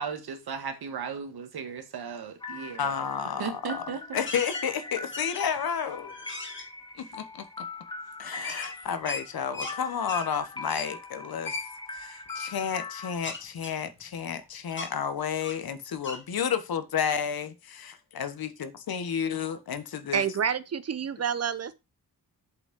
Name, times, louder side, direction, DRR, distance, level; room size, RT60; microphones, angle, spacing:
voice 1, 0.0-2.9 3.4-4.2, right 6 dB, 85° right, 1.7 m, -36 dB
sound 1, 2.4-13.1, left 3 dB, 10° left, 1.3 m, -41 dB
voice 2, 2.8-6.3 7.0-7.6 8.2-11.6 11.9-20.2, left 7 dB, 75° left, 1.3 m, -31 dB
sound 2, 4.3-4.7 5.1-5.6 6.1-6.7 8.4-9.8 10.1-10.3 10.7-10.9 11.5-11.7 12.3-12.5 13.2-14.4 14.7-14.9 15.4-15.7 16.0-16.2, left 3 dB, 30° left, 1.9 m, -37 dB
voice 3, 20.1-21.7, right 7 dB, 45° right, 0.8 m, -28 dB
7.7 x 5.4 x 5.2 m
wide cardioid pair, 160°, 37 cm